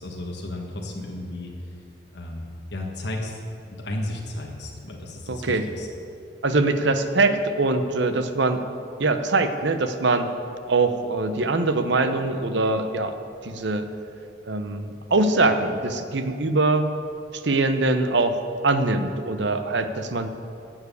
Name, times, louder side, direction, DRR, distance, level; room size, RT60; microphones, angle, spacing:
voice 1, 0.0-1.5 2.1-3.4 3.8-5.9, left 1 dB, 60° left, -1 dB, 1.4 m, -33 dB
voice 2, 5.3-5.6 6.4-8.6 9.0-10.3 10.7-13.1 13.4-13.9 14.5-16.9 17.4-20.3, right 2 dB, 65° right, 8 dB, 0.8 m, -23 dB
11.5 x 7.4 x 8.3 m, 2.6 s
head